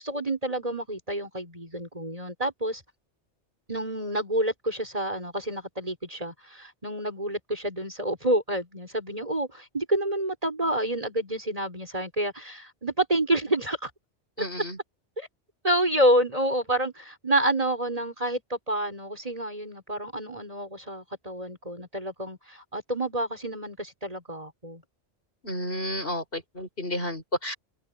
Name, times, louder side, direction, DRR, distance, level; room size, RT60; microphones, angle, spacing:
voice 1, 0.0-2.8 3.7-13.9 14.4-14.5 15.2-15.3 15.6-24.8, right 1 dB, 30° right, 5.6 m, -28 dB
voice 2, 14.4-14.8 25.4-27.5, left 1 dB, 50° left, 5.8 m, -31 dB
omnidirectional pair, 1.2 m